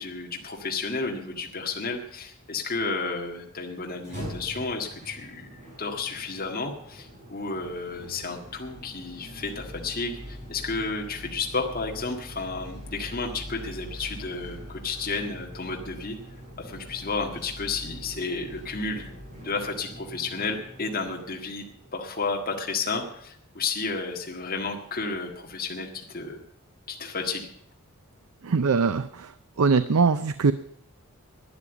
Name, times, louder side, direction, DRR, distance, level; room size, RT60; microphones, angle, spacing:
voice 1, 0.0-16.2 16.6-19.1 19.4-21.6 21.9-26.4 26.9-27.5, left 4 dB, 40° left, 1 dB, 1.8 m, -32 dB
sound 1, 3.9-22.0, equal, 40° right, 7.3 m, -43 dB
voice 2, 28.4-29.3 29.6-30.5, right 5 dB, 85° right, 13 dB, 0.6 m, -22 dB
12.0 x 10.0 x 7.9 m, 0.69 s
head